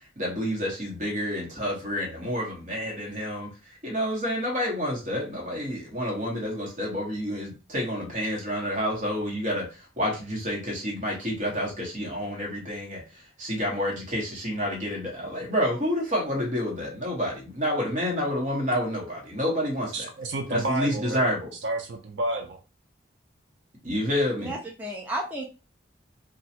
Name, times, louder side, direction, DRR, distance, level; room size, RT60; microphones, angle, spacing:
voice 1, 0.2-3.5 3.8-20.1 20.5-21.5 23.8-24.5, equal, 40° right, 1.2 m, -29 dB
voice 2, 19.9-21.4 21.6-22.6, right 2 dB, 70° right, 0.5 m, -31 dB
voice 3, 24.4-25.5, right 1 dB, 10° right, 0.5 m, -32 dB
3.1 x 2.3 x 2.7 m
head